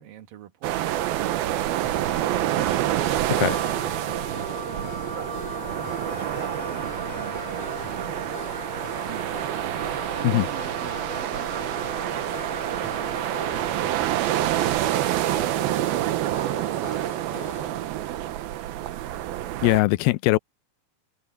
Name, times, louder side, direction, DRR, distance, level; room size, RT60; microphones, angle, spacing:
voice 1, 0.0-2.5 3.2-5.4 6.0-9.3 10.1-14.7 15.1-18.3, right 10 dB, 70° right, 3.1 m, -44 dB
sound 1, 0.6-19.8, right 13 dB, 90° right, 2.9 m, -27 dB
sound 2, 1.8-17.9, left 9 dB, 70° left, 1.6 m, -43 dB
Wind instrument woodwind instrument, 3.4-13.9, right 2 dB, 20° right, 3.4 m, -38 dB
voice 2, 19.6-20.4, left 19 dB, 85° left, 2.4 m, -20 dB
omnidirectional pair, 4.2 m